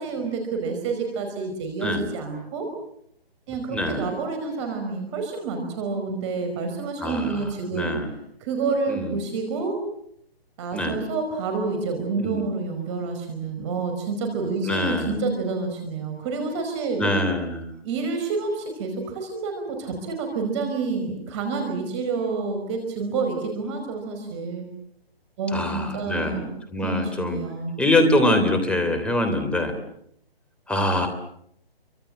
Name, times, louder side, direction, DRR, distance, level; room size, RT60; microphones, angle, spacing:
voice 1, 0.0-2.7 3.5-7.9 8.4-9.8 10.6-17.0 17.8-24.7 25.4-26.5 26.7-27.7, right 4 dB, 30° right, 4 dB, 5.4 m, -28 dB
voice 2, 3.7-4.1 7.0-8.1 8.9-9.2 10.7-11.0 12.1-12.4 14.6-15.2 17.0-17.7 25.5-26.4 26.7-27.4 27.8-29.8 30.7-31.1, left 1 dB, 5° left, 8 dB, 3.2 m, -24 dB
30.0 x 25.5 x 7.7 m, 0.73 s
figure-of-eight pair, 145°, 30 cm